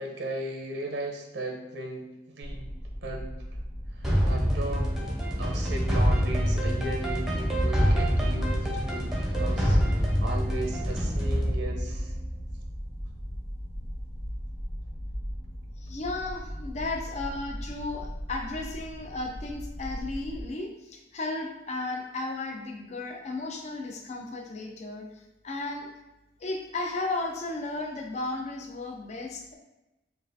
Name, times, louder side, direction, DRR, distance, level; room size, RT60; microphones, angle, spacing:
voice 1, 0.0-2.7 3.0-3.4 3.9-4.9 5.4-12.1, right 1 dB, 70° right, 1 dB, 0.6 m, -37 dB
sound 1, 2.4-20.4, equal, 70° left, 1.4 m, -38 dB
sound 2, 4.0-12.9, equal, 5° right, 0.7 m, -26 dB
voice 2, 15.8-25.1 25.4-25.9 26.4-29.6, left 2 dB, 35° left, 1 dB, 0.5 m, -34 dB
5.3 x 2.4 x 2.6 m, 0.99 s
head